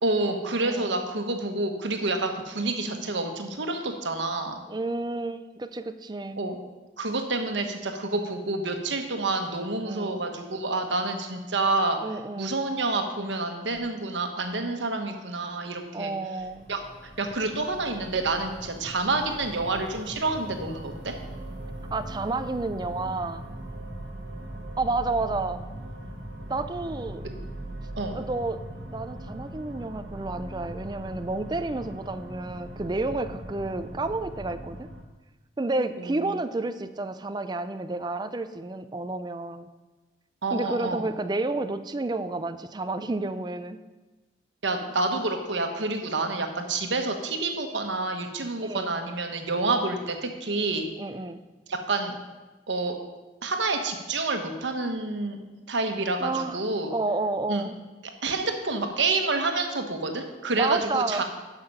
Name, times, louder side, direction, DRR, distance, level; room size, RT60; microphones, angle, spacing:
voice 1, 0.0-4.6 6.4-6.5 7.0-12.0 12.4-16.1 16.7-16.8 17.2-21.1 28.0-28.2 36.0-36.4 40.4-41.1 44.6-50.9 51.7-52.1 52.7-52.9 53.4-55.4 55.7-56.9 57.5-57.7 58.2-61.2, right 3 dB, 80° right, 5 dB, 1.2 m, -28 dB
voice 2, 0.6-1.0 4.7-6.4 9.9-10.2 12.0-12.6 15.9-16.7 21.9-23.4 24.8-25.6 26.5-27.2 28.1-28.6 28.9-34.9 35.6-39.7 40.5-43.8 48.6-48.9 51.0-51.4 56.2-56.6 56.9-57.8 60.6-61.2, right 2 dB, 25° right, 10 dB, 0.4 m, -30 dB
sound 1, 16.4-35.0, right 1 dB, 60° right, 1.4 m, -40 dB
11.5 x 5.9 x 5.5 m, 1.2 s
head